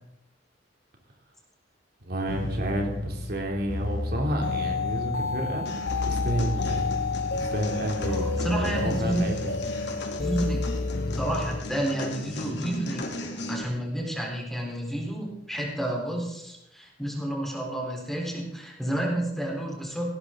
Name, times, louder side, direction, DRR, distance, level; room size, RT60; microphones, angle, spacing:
voice 1, 2.0-5.6 6.0-6.9 7.3-9.5, right 1 dB, 55° right, 1 dB, 3.0 m, -30 dB
sound 1, 2.3-11.6, left 3 dB, 80° left, 1.8 m, -30 dB
sound 2, 5.7-13.6, left 1 dB, 65° left, 2.5 m, -37 dB
voice 2, 8.0-9.3 10.2-10.8 11.1-20.1, right 1 dB, ahead, -1 dB, 4.0 m, -30 dB
19.0 x 17.5 x 3.9 m, 0.83 s
head